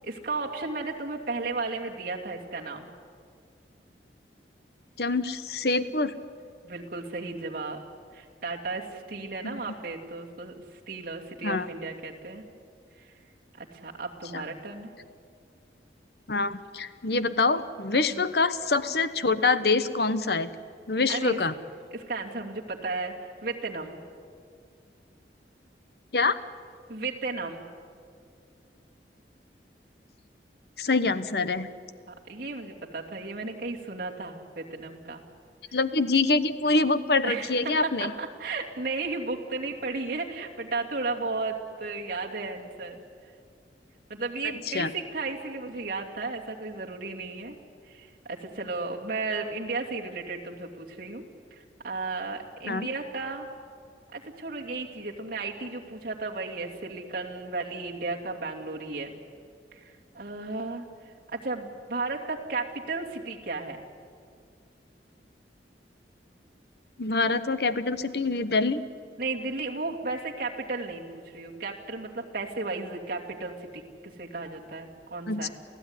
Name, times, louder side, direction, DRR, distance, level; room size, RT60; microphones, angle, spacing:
voice 1, 0.0-2.9 6.6-7.8 8.1-12.4 13.0-13.1 13.6-14.9 18.1-18.2 21.1-21.4 21.9-23.1 23.4-24.0 26.9-27.6 32.1-35.2 35.7-35.8 37.2-43.0 44.1-47.6 47.8-51.2 51.5-53.5 54.1-59.1 59.7-60.8 61.3-63.8 69.2-75.5, right 3 dB, 55° right, -2 dB, 2.9 m, -34 dB
voice 2, 5.0-6.1 9.4-9.6 11.4-11.7 14.3-14.4 16.3-20.5 20.9-21.5 26.1-26.4 30.8-31.7 35.7-38.1 44.7-44.9 52.7-52.9 67.0-68.8 75.3-75.5, left 3 dB, 60° left, 13 dB, 1.0 m, -25 dB
28.0 x 16.0 x 9.9 m, 2.2 s
head